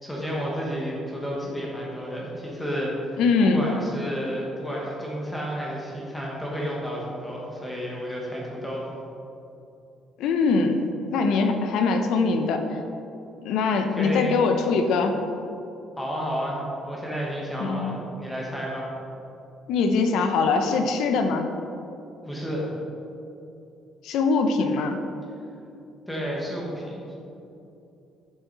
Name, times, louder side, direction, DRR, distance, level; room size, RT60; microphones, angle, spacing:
voice 1, 0.0-8.9 13.7-14.4 16.0-18.8 22.2-22.6 26.1-27.1, equal, 5° left, -4 dB, 1.4 m, -31 dB
voice 2, 3.2-3.7 10.2-10.8 11.1-12.6 13.4-15.1 17.6-17.9 19.7-21.5 24.0-25.0, left 4 dB, 70° left, 5 dB, 0.9 m, -22 dB
9.4 x 7.9 x 4.1 m, 2.8 s
cardioid pair, 175°, 0 cm